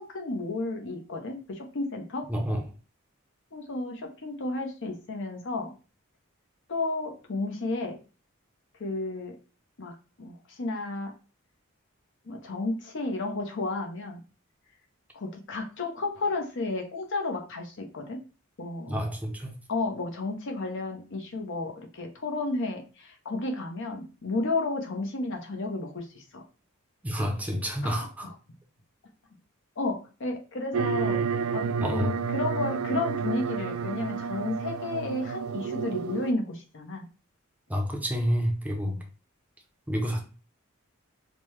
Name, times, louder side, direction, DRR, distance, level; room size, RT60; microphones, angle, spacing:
voice 1, 0.0-2.3 3.5-5.7 6.7-8.0 8.8-9.4 9.8-11.1 12.3-14.2 15.1-18.2 18.6-19.0 19.7-26.4 27.8-28.3 29.8-31.2 31.5-31.6 31.9-37.1 38.8-39.0, left 2 dB, 60° left, 0.8 m, -32 dB
voice 2, 2.3-2.6 18.9-19.5 27.0-28.3 31.8-32.1 37.7-39.0 39.9-40.2, equal, 5° right, 0.6 m, -29 dB
sound 1, 30.7-36.3, right 6 dB, 70° right, 0.3 m, -30 dB
5.1 x 2.1 x 3.1 m
head